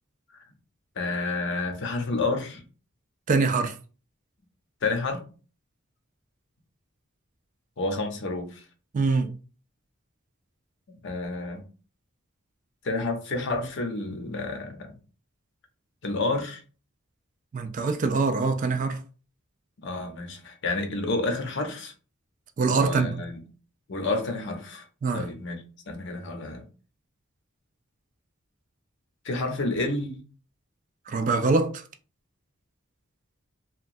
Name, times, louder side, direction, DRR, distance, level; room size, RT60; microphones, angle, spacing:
voice 1, 1.0-2.6 4.8-5.2 7.8-8.6 11.0-11.6 12.8-14.9 16.0-16.6 19.8-21.9 22.8-23.4 23.9-24.8 25.1-26.6 29.2-30.2, left 3 dB, 60° left, 0.7 m, -30 dB
voice 2, 3.3-3.8 8.9-9.3 17.5-19.0 22.6-23.1 25.0-25.2 31.1-31.8, right 4 dB, 40° right, 0.3 m, -24 dB
2.9 x 2.2 x 2.6 m
head